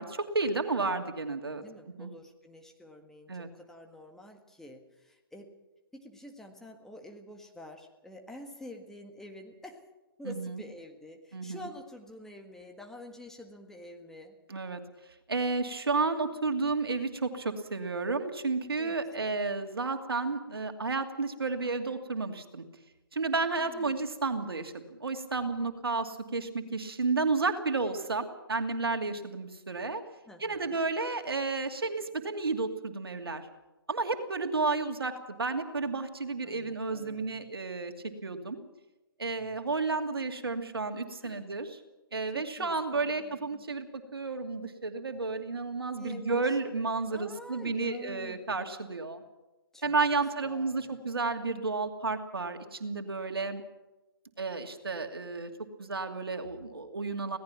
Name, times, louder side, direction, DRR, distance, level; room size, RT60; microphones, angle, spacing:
voice 1, 0.0-1.6 2.0-2.1 3.3-3.5 10.2-10.6 11.3-11.6 14.5-14.8 15.3-22.6 23.1-30.0 30.4-33.5 33.9-37.9 38.2-38.6 39.2-41.8 42.1-49.2 49.8-53.6 54.4-55.5 55.8-57.4, right 3 dB, 75° right, 6 dB, 2.5 m, -32 dB
voice 2, 1.6-5.5 5.9-9.8 10.2-14.4 18.8-19.4 23.3-24.0 30.3-30.8 36.4-37.5 39.4-39.6 41.2-41.4 42.3-43.7 46.0-46.7 47.1-48.4 49.7-51.0, left 1 dB, 5° left, 3 dB, 1.7 m, -48 dB
26.5 x 17.5 x 6.0 m, 1.0 s
figure-of-eight pair, 130°, 12 cm